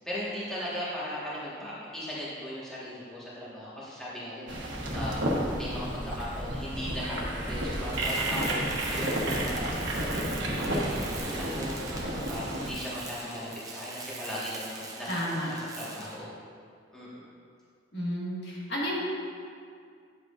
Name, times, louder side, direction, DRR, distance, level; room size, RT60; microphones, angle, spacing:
voice 1, 0.0-5.2 5.5-9.7 10.1-11.7 12.1-16.3 16.9-17.3, left 1 dB, 5° left, -9 dB, 1.6 m, -38 dB
sound 1, 4.5-12.7, right 1 dB, 75° right, 1.3 m, -31 dB
Tools, 7.9-16.3, right 4 dB, 20° right, 0.7 m, -43 dB
voice 2, 15.1-15.5 17.9-19.0, equal, 60° left, -6 dB, 1.8 m, -31 dB
10.0 x 7.5 x 2.6 m, 2.2 s
head